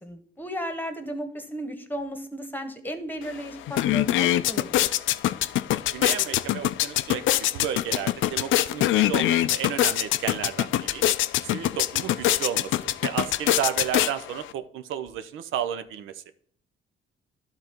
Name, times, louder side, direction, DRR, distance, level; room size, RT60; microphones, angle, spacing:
voice 1, 0.0-4.9, equal, 10° left, 7 dB, 1.2 m, -35 dB
sound 1, 3.2-3.3 3.6-14.5, left 14 dB, 75° left, 0.4 m, -24 dB
voice 2, 5.9-11.0 11.4-16.2, right 9 dB, 85° right, 11 dB, 0.6 m, -32 dB
11.5 x 3.9 x 4.4 m, 0.62 s
cardioid pair, 90°, 20 cm